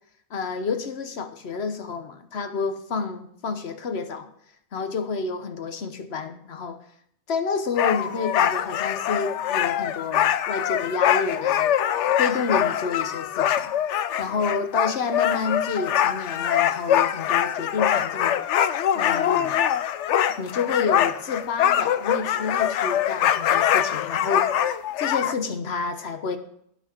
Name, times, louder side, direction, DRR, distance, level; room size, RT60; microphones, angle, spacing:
voice 1, 0.3-4.3 4.7-6.8 7.3-11.7 12.2-13.7 14.2-18.4 18.9-19.6 20.4-24.5 25.0-26.4, left 5 dB, 65° left, 9 dB, 1.3 m, -29 dB
sound 1, 7.8-25.3, left 10 dB, 85° left, 0.9 m, -23 dB
18.0 x 6.0 x 4.5 m, 0.70 s
omnidirectional pair, 1.2 m